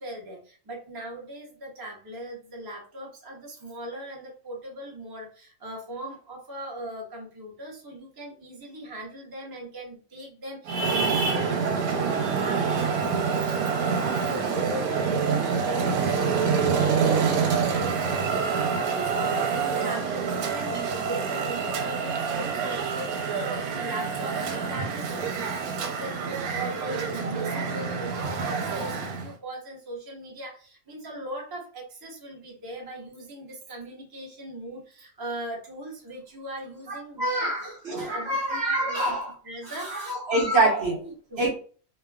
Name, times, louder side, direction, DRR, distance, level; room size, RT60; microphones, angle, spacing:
voice 1, 0.0-18.3 18.7-37.5 37.9-39.9 40.5-40.7 41.0-41.5, right 1 dB, 20° right, 0.6 m, -39 dB
Traffic noise roadway noise, 10.6-29.3, right 5 dB, 90° right, 1.1 m, -27 dB
voice 2, 36.9-39.3 39.6-41.0 41.4-41.5, right 2 dB, 50° right, 1.0 m, -26 dB
3.1 x 2.2 x 2.2 m
omnidirectional pair, 1.5 m